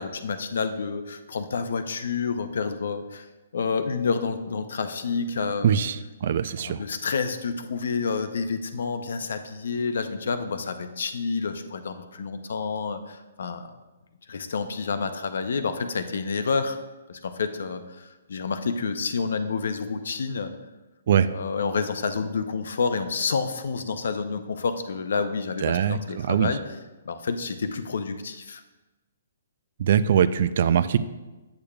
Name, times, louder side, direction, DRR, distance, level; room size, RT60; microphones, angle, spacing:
voice 1, 0.0-3.3 3.5-5.8 6.6-13.7 14.3-16.8 17.1-20.5 21.3-26.6 27.1-28.6, left 5 dB, 75° left, 9 dB, 0.6 m, -29 dB
voice 2, 5.6-6.8 21.1-21.3 25.6-26.5 29.8-31.0, right 8 dB, 55° right, 14 dB, 0.3 m, -22 dB
8.5 x 6.7 x 2.3 m, 1.1 s
hypercardioid pair, 155°, 0 cm